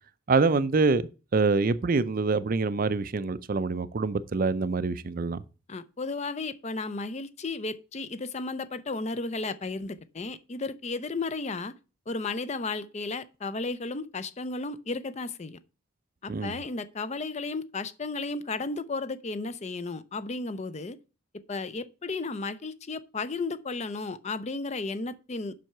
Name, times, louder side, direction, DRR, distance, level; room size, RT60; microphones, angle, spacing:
voice 1, 0.3-5.4 16.3-16.5, right 4 dB, 40° right, 0.4 m, -25 dB
voice 2, 5.7-11.7 12.1-15.6 16.2-21.0 21.5-25.5, left 3 dB, 30° left, 0.5 m, -34 dB
7.6 x 5.6 x 6.5 m
head